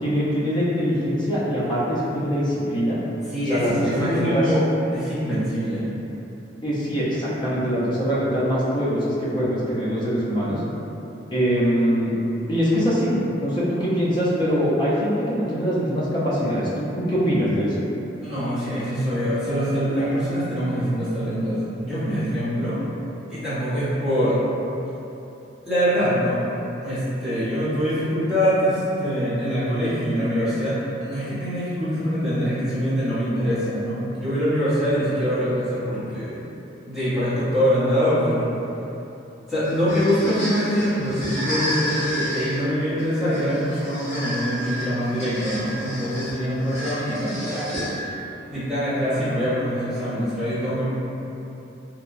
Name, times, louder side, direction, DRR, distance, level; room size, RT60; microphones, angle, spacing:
voice 1, 0.0-3.0 3.5-4.5 6.6-10.6 11.3-12.1 12.5-17.8 49.2-49.4, equal, 25° left, -8 dB, 0.5 m, -23 dB
voice 2, 3.3-4.6 4.9-5.9 18.2-22.8 23.3-24.4 25.6-26.4 26.8-36.3 36.9-38.5 39.5-47.5 48.5-50.9, equal, ahead, -14 dB, 0.8 m, -24 dB
sound 1, 39.6-48.3, equal, 40° left, 1.1 m, -31 dB
2.8 x 2.1 x 2.4 m, 2.9 s
head